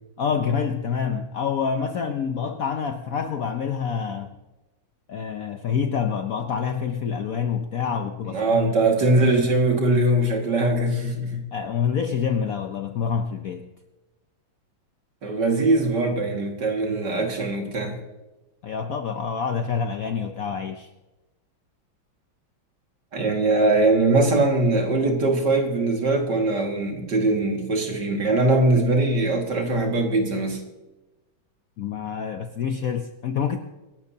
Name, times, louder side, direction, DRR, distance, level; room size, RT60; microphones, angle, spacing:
voice 1, 0.2-4.3 5.1-8.9 11.5-13.7 18.6-20.9 31.8-33.6, left 6 dB, 65° left, 7 dB, 0.9 m, -27 dB
voice 2, 8.3-11.4 15.2-18.0 23.1-30.6, right 2 dB, 60° right, 2 dB, 2.5 m, -21 dB
25.5 x 12.0 x 2.8 m, 1.1 s
omnidirectional pair, 2.2 m